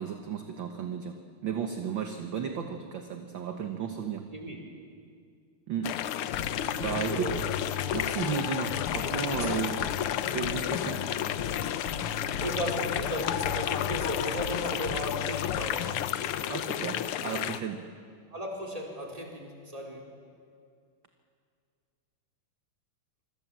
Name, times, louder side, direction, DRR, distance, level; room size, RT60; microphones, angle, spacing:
voice 1, 0.0-4.2 5.7-6.0 6.3-6.4 6.8-7.4 7.9-9.8 10.2-11.0 16.5-17.9, right 7 dB, 55° right, 5 dB, 1.5 m, -34 dB
sound 1, 5.8-17.6, left 11 dB, 75° left, 1.3 m, -32 dB
sound 2, 6.3-16.4, left 7 dB, 60° left, 1.4 m, -38 dB
voice 2, 6.6-7.5 9.3-9.9 11.7-12.0 12.4-15.9 18.3-20.1, equal, 10° right, -1 dB, 4.0 m, -36 dB
26.0 x 25.0 x 7.5 m, 2.2 s
omnidirectional pair, 3.3 m